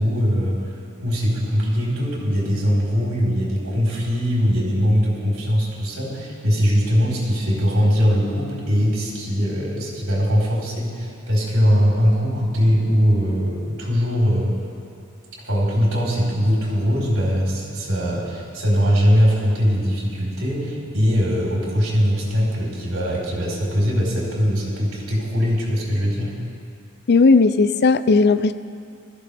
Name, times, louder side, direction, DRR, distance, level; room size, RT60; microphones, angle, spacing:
voice 1, 0.0-14.5 15.3-26.3, equal, 70° right, -5 dB, 4.3 m, -21 dB
voice 2, 27.1-28.5, left 4 dB, 50° left, 13 dB, 0.5 m, -15 dB
20.5 x 14.5 x 3.5 m, 2.3 s
head